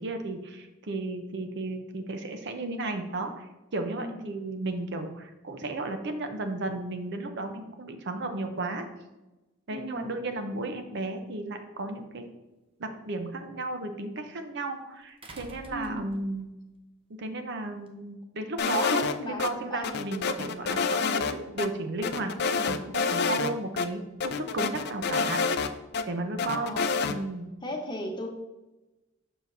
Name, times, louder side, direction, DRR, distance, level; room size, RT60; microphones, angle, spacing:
voice 1, 0.0-8.8 9.7-12.2 12.8-16.5 17.1-25.4 26.1-26.7 27.1-27.5, right 2 dB, 60° right, 6 dB, 0.7 m, -34 dB
voice 2, 4.0-4.3 9.7-10.1 15.7-16.1 18.8-20.0 26.4-26.8 27.6-28.3, left 1 dB, 25° left, 1 dB, 1.0 m, -37 dB
sound 1, 11.9-12.0 15.2-16.5 17.9-18.0, right 1 dB, 30° right, 0.7 m, -47 dB
sound 2, 18.6-19.5 19.8-21.3 21.6-21.7 22.0-23.5 23.8-23.9 24.2-26.0 26.4-27.1, left 5 dB, 55° left, 0.4 m, -28 dB
7.0 x 5.8 x 2.7 m, 1.0 s
head